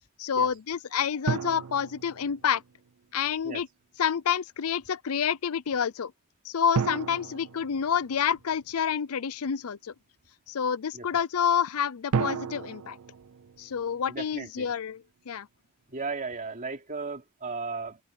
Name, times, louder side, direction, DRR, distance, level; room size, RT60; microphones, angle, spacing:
voice 1, 0.2-2.6 3.1-3.7 4.0-6.1 6.4-9.9 10.5-13.0 13.6-15.5, left 7 dB, 75° left, 0.5 m, -28 dB
sound 1, 1.3-2.9 6.7-8.6 12.1-14.4, right 6 dB, 80° right, 0.5 m, -33 dB
voice 2, 14.1-14.7 15.9-18.0, right 4 dB, 40° right, 3.2 m, -36 dB
open air
head